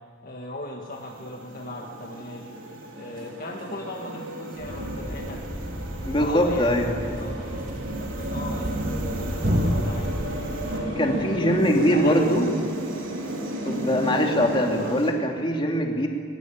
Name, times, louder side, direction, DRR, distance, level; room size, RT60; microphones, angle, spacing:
voice 1, 0.2-2.6 3.0-5.5 6.2-7.5 7.9-10.2 10.7-11.4 11.7-12.2 14.7-15.0, left 1 dB, 45° left, 0 dB, 1.8 m, -37 dB
sound 1, 0.9-15.1, right 1 dB, 85° right, 4.0 m, -33 dB
Thump thud, 4.6-10.8, equal, 35° right, 2.6 m, -30 dB
voice 2, 6.0-6.9 11.0-12.5 13.7-16.1, equal, 25° left, 1 dB, 2.9 m, -22 dB
22.0 x 21.0 x 8.9 m, 2.2 s
head